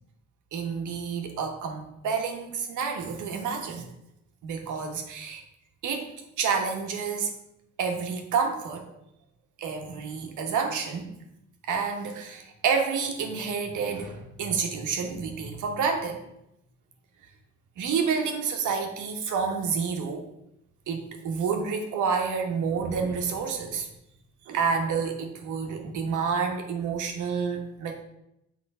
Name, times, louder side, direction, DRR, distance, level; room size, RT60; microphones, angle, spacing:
voice 1, 0.5-3.9 4.4-5.4 5.8-7.3 7.8-8.8 9.6-11.1 11.7-16.2 17.8-20.3 20.9-23.9 24.5-28.0, right 5 dB, 80° right, 4 dB, 1.3 m, -29 dB
6.6 x 3.8 x 5.4 m, 0.83 s
cardioid pair, 90°, 30 cm